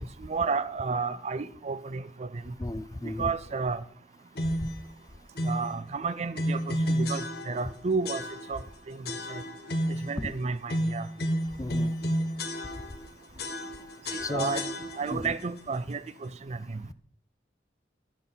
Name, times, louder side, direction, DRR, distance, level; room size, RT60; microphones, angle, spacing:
voice 1, 0.2-2.5 3.0-3.8 5.4-8.6 8.9-9.4 9.9-11.1 14.1-14.7 15.0-16.8, right 4 dB, 40° right, 0.4 m, -32 dB
voice 2, 2.6-3.3 4.6-4.7 10.2-10.3 11.6-11.9 14.2-14.6 15.1-15.3, left 2 dB, 20° left, 0.4 m, -34 dB
sound 1, 4.4-4.8 5.4-5.7 6.3-7.7 8.0-8.7 9.0-10.1 10.7-13.1 13.4-15.3, equal, 60° left, 1.2 m, -31 dB
11.5 x 5.9 x 5.4 m
head